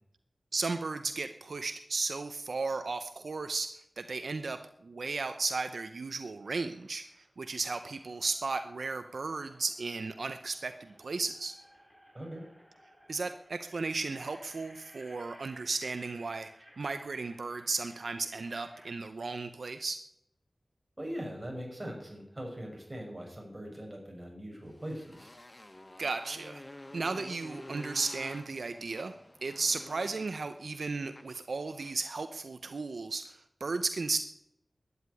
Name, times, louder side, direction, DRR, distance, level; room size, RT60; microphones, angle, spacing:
voice 1, 0.5-3.7 4.0-11.5 13.1-16.5 16.8-20.0 26.0-26.6 26.9-29.1 29.4-34.2, right 3 dB, 85° right, 9 dB, 0.9 m, -35 dB
sound 1, 6.4-7.3 7.8-19.0, equal, ahead, 6.8 m, -59 dB
voice 2, 21.0-25.3, equal, 25° right, 1 dB, 6.4 m, -41 dB
Motorcycle, 24.7-32.1, left 1 dB, 30° left, 1.1 m, -50 dB
13.0 x 9.9 x 9.8 m, 0.76 s
wide cardioid pair, 55°, 0 cm